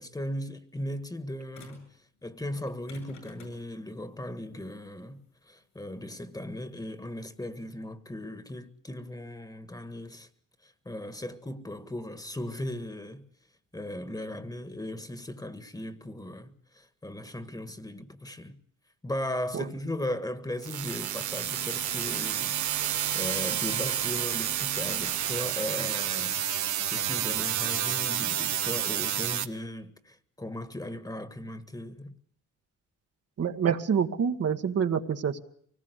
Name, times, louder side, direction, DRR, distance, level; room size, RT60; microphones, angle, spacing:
voice 1, 0.0-1.9 2.2-10.3 10.6-13.3 13.7-18.6 19.0-32.1, left 1 dB, 10° left, 1.8 m, -37 dB
sound 1, 1.5-1.9 2.6-7.6, left 6 dB, 75° left, 7.5 m, -53 dB
sound 2, 20.6-29.5, right 10 dB, 75° right, 1.4 m, -30 dB
voice 2, 33.4-35.4, right 7 dB, 55° right, 1.6 m, -27 dB
24.0 x 19.0 x 8.1 m
cardioid pair, 90°, 30 cm